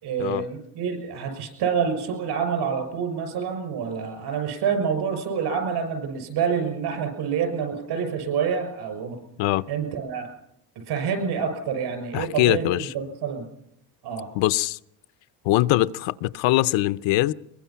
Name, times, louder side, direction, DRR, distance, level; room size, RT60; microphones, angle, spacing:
voice 1, 0.0-9.2 9.7-10.3 10.8-12.7 12.9-13.5 14.0-14.3, right 6 dB, 65° right, 6.1 m, -27 dB
voice 2, 12.1-12.9 14.3-14.8 15.4-17.3, left 17 dB, 80° left, 0.7 m, -22 dB
23.0 x 22.0 x 5.8 m
cardioid pair, 180°, 44 cm